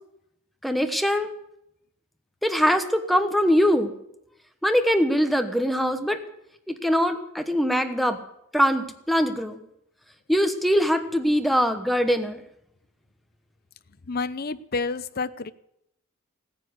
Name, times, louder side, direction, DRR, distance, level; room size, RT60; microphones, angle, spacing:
voice 1, 0.6-1.3 2.4-3.9 4.6-6.2 6.7-8.2 8.5-9.6 10.3-12.4, equal, ahead, 6 dB, 1.1 m, -22 dB
voice 2, 14.1-15.5, left 4 dB, 50° left, 13 dB, 0.7 m, -29 dB
17.0 x 9.7 x 8.0 m, 0.79 s
head